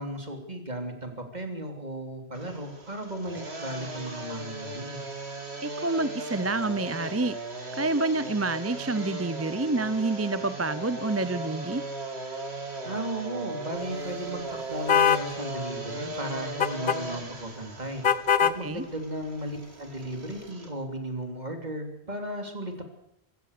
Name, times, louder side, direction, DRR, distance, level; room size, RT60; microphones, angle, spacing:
voice 1, 0.0-5.0 12.9-22.8, right 1 dB, 40° right, 5 dB, 3.6 m, -35 dB
sound 1, 2.3-20.7, right 2 dB, 80° right, 3.1 m, -38 dB
voice 2, 5.6-7.4 7.7-11.8 18.6-18.8, right 2 dB, 15° right, 14 dB, 0.6 m, -28 dB
sound 2, 14.9-15.3 16.6-17.0 18.0-18.6, left 8 dB, 55° left, 1.1 m, -21 dB
24.0 x 16.0 x 6.8 m, 0.79 s
omnidirectional pair, 1.1 m